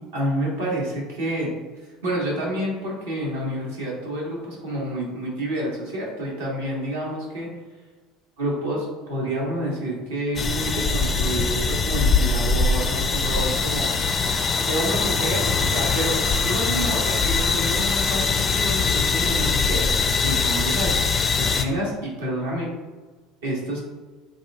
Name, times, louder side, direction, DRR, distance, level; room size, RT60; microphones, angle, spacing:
voice 1, 0.1-1.5 2.0-7.5 8.4-13.9 14.6-16.2 16.4-21.0 21.3-22.7 23.4-23.8, right 1 dB, 70° right, -4 dB, 1.4 m, -28 dB
sound 1, 10.4-21.6, left 4 dB, 30° left, 0.5 m, -22 dB
7.7 x 2.7 x 2.3 m, 1.3 s
figure-of-eight pair, 65°, 0 cm